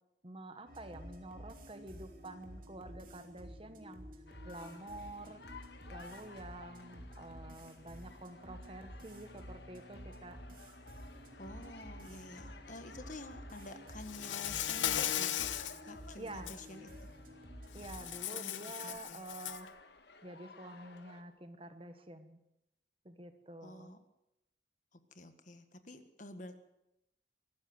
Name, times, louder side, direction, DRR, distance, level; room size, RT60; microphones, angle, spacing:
voice 1, 0.2-4.1 4.4-5.4 5.9-10.4 16.2-16.6 17.7-19.7 20.2-22.4 23.0-23.9, right 1 dB, 30° right, 9 dB, 1.4 m, -48 dB
sound 1, 0.7-18.2, equal, 45° right, 2.8 m, -51 dB
sound 2, 4.3-21.2, left 4 dB, 60° left, 1.7 m, -56 dB
voice 2, 11.4-15.5 15.9-16.9 18.3-19.2 23.6-24.0 25.1-26.6, left 2 dB, 40° left, 9 dB, 1.6 m, -49 dB
Insect, 14.0-15.8 16.3-16.6 17.8-19.7, left 11 dB, 90° left, 1.0 m, -37 dB
24.0 x 13.5 x 7.9 m, 0.87 s
head